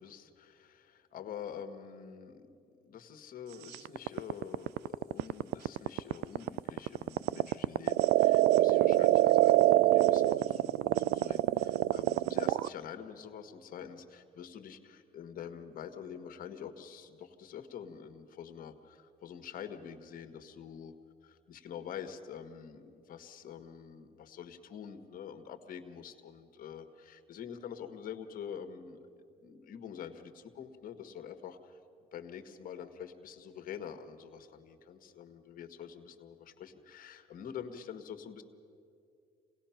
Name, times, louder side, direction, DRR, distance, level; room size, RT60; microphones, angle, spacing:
voice 1, 0.0-2.5 2.8-20.9 21.2-29.0 29.4-31.8 32.1-38.4, left 8 dB, 55° left, 8 dB, 1.5 m, -46 dB
sound 1, 3.7-12.7, right 15 dB, 80° right, 0.4 m, -25 dB
27.0 x 18.0 x 5.8 m, 2.4 s
cardioid pair, 110°, 17 cm